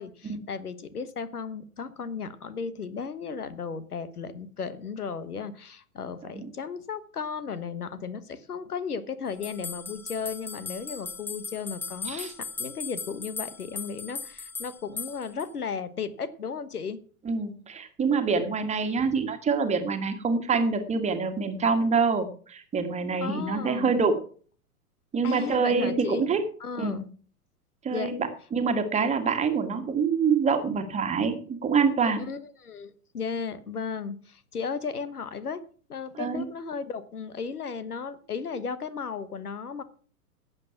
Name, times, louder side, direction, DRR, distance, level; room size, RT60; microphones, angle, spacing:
voice 1, 0.0-17.0 23.2-23.9 25.2-26.3 26.6-27.1 27.9-28.1 32.3-35.6 35.9-39.8, left 5 dB, 75° left, 15 dB, 1.3 m, -35 dB
sound 1, 9.4-15.5, left 4 dB, 5° left, 0.5 m, -38 dB
voice 2, 17.2-24.2 25.1-26.4 26.8-27.0 27.8-28.1 28.5-32.2 36.1-36.4, right 5 dB, 15° right, 6 dB, 1.7 m, -26 dB
12.0 x 8.2 x 5.9 m, 0.43 s
figure-of-eight pair, 105°, 46 cm